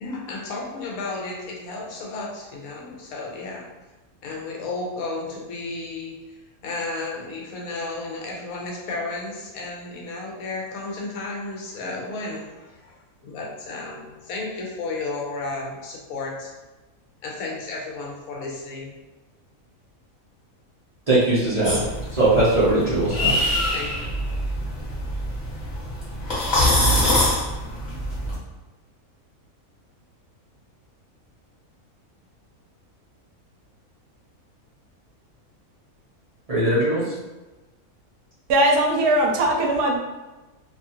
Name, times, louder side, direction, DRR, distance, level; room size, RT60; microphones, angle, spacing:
voice 1, 0.0-3.7 4.2-6.2 6.6-13.0 13.2-16.5 17.2-18.9 23.3-24.0, left 3 dB, 75° left, -1 dB, 1.0 m, -33 dB
voice 2, 21.1-21.8 22.1-23.3 36.5-37.1, right 2 dB, 40° right, -10 dB, 0.5 m, -20 dB
sound 1, 21.6-28.4, left 1 dB, 35° left, 1.1 m, -24 dB
voice 3, 38.5-40.0, right 1 dB, 80° right, 0 dB, 1.0 m, -19 dB
2.7 x 2.3 x 2.8 m, 1.1 s
omnidirectional pair, 1.5 m